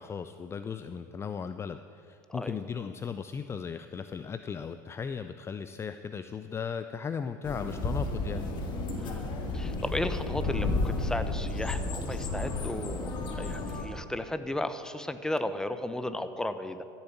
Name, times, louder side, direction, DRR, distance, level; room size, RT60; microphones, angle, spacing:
voice 1, 0.0-8.5, left 6 dB, 25° left, 10 dB, 0.5 m, -37 dB
sound 1, 7.4-13.8, left 2 dB, 45° left, 2.2 m, -32 dB
voice 2, 8.9-16.8, left 1 dB, 5° left, 11 dB, 0.9 m, -35 dB
13.5 x 7.2 x 9.5 m, 2.6 s
hypercardioid pair, 85°, 11 cm